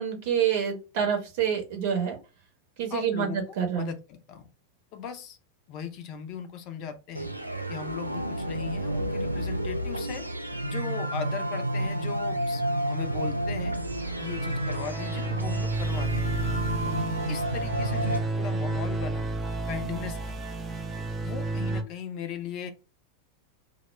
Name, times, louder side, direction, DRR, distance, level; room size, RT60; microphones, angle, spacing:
voice 1, 0.0-2.2 2.8-3.9, right 8 dB, 50° right, 2 dB, 0.8 m, -27 dB
voice 2, 2.9-3.4 3.8-4.5 4.9-5.4 5.7-7.3 7.7-10.2 10.6-13.8 14.2-16.2 17.3-19.2 19.7-20.4 21.2-22.7, left 7 dB, 40° left, 8 dB, 0.4 m, -38 dB
sound 1, 7.1-18.2, right 1 dB, 85° right, 0.3 m, -31 dB
sound 2, 13.6-21.8, right 2 dB, 20° right, 0.5 m, -31 dB
2.0 x 2.0 x 3.2 m, 0.30 s
figure-of-eight pair, 90°, 0 cm